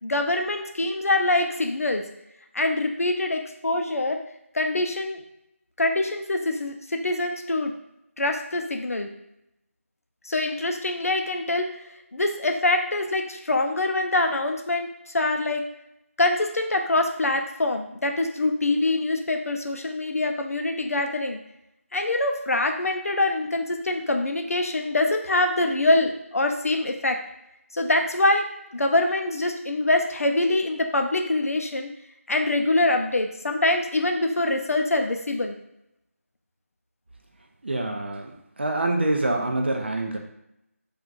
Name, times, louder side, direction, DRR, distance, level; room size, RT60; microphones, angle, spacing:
voice 1, 0.0-2.0 2.5-4.2 4.5-5.2 5.8-7.7 8.2-9.1 10.3-11.7 12.1-14.9 15.1-15.6 16.2-21.4 21.9-27.2 27.7-31.9 32.3-35.6, left 2 dB, 75° left, 5 dB, 0.5 m, -24 dB
voice 2, 37.6-38.3 38.6-40.2, right 2 dB, 45° right, 2 dB, 0.5 m, -25 dB
4.4 x 2.4 x 2.4 m, 0.83 s
figure-of-eight pair, 175°, 8 cm